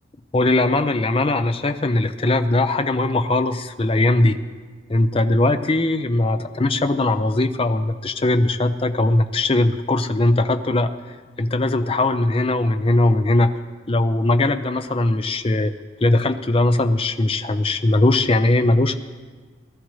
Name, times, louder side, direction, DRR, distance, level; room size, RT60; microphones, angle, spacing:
voice 1, 0.3-4.4 4.9-10.9 11.4-13.5 13.9-15.7 16.0-19.0, left 2 dB, 30° left, 9 dB, 0.5 m, -20 dB
19.5 x 13.0 x 3.2 m, 1.4 s
head